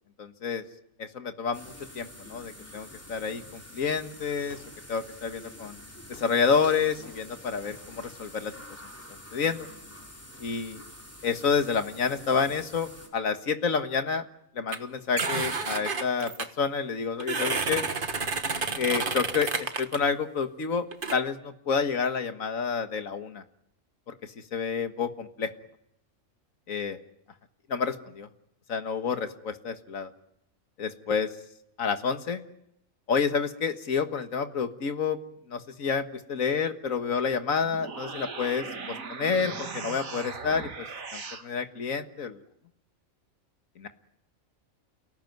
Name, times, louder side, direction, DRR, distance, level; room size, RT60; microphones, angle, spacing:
voice 1, 0.2-0.6 1.0-4.6 4.9-5.8 6.1-8.5 9.3-9.7 10.4-10.8 11.2-14.2 14.6-16.3 16.6-17.8 18.8-20.9 21.1-23.4 24.5-25.5 26.7-27.0 27.7-28.3 28.7-30.1 30.8-31.3 31.8-32.4 33.1-35.2 35.5-36.0 36.3-40.7 41.1-42.4 43.8-43.9, left 6 dB, 80° left, 8 dB, 2.0 m, -29 dB
sound 1, 1.5-13.1, equal, 10° left, 4.0 m, -47 dB
sound 2, 14.7-14.8 15.2-16.5 17.2-20.0 20.9-21.2, right 4 dB, 40° right, 1.6 m, -30 dB
sound 3, 37.6-41.5, right 4 dB, 85° right, 2.2 m, -38 dB
29.5 x 18.0 x 9.4 m, 0.78 s
omnidirectional pair, 1.4 m